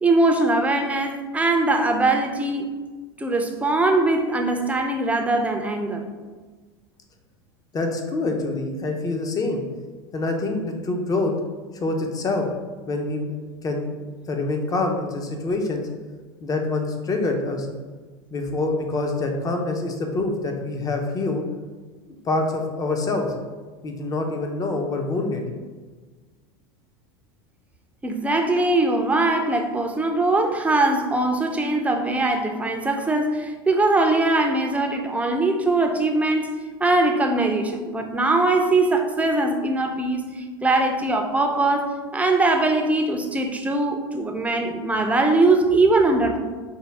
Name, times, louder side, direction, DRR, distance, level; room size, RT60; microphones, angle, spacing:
voice 1, 0.0-2.7 3.2-6.0 28.0-36.6 36.8-46.4, right 2 dB, 10° right, 3 dB, 0.5 m, -21 dB
voice 2, 7.7-9.6 10.1-11.3 11.7-12.5 12.9-13.3 13.6-13.9 14.3-15.9 16.4-17.7 18.3-21.4 22.2-23.3 23.8-25.4, left 2 dB, 30° left, 3 dB, 0.7 m, -25 dB
5.3 x 2.2 x 3.3 m, 1.4 s
hypercardioid pair, 100°, 13 cm